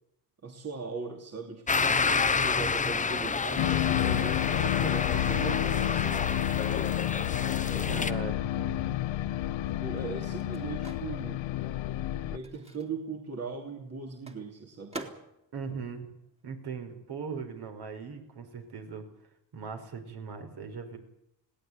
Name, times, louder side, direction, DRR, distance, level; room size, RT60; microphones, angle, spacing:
voice 1, 0.4-6.5 9.8-11.4 12.3-15.0, right 4 dB, 35° right, 3 dB, 2.8 m, -39 dB
sound 1, 1.7-8.1, left 4 dB, 15° left, 0.9 m, -29 dB
sound 2, 3.6-12.4, left 13 dB, 70° left, 1.2 m, -30 dB
voice 2, 7.9-9.0 15.5-16.1 16.4-19.1 19.5-21.0, right 5 dB, 55° right, 5 dB, 5.3 m, -39 dB
Microwave oven, 9.6-17.1 17.4-19.3, right 2 dB, 15° right, 2.9 m, -49 dB
20.5 x 17.5 x 9.6 m, 0.81 s
cardioid pair, 120°, 47 cm